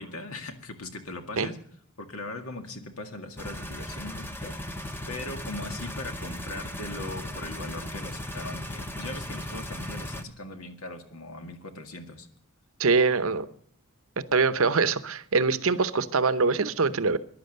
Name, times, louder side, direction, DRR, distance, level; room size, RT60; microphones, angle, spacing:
voice 1, 0.0-1.6 2.0-4.6 5.1-12.3, left 2 dB, 70° left, 6 dB, 1.9 m, -39 dB
sound 1, 3.4-10.2, left 1 dB, 10° left, 1.0 m, -37 dB
voice 2, 12.8-13.5 14.3-17.2, right 4 dB, 65° right, 13 dB, 0.8 m, -23 dB
15.0 x 11.0 x 6.7 m, 0.64 s
head